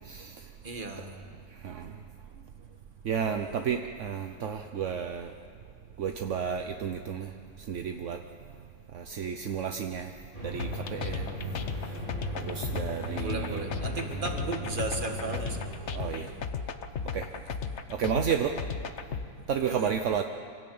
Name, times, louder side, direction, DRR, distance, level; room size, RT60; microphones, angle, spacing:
voice 1, 0.6-1.1 13.2-15.7 16.0-16.3 19.7-19.9, right 3 dB, 25° right, 4 dB, 1.9 m, -35 dB
voice 2, 3.0-5.3 6.0-7.3 7.7-8.2 8.9-10.1 10.4-11.3 12.4-13.7 15.9-16.3 17.1-17.2 18.0-18.5 19.5-20.2, right 7 dB, 55° right, 5 dB, 0.9 m, -31 dB
sound 1, 10.3-15.6, equal, 25° left, 3.6 m, -37 dB
sound 2, 10.6-19.3, left 6 dB, 45° left, 1.0 m, -35 dB
25.5 x 17.5 x 8.7 m, 2.3 s
omnidirectional pair, 2.1 m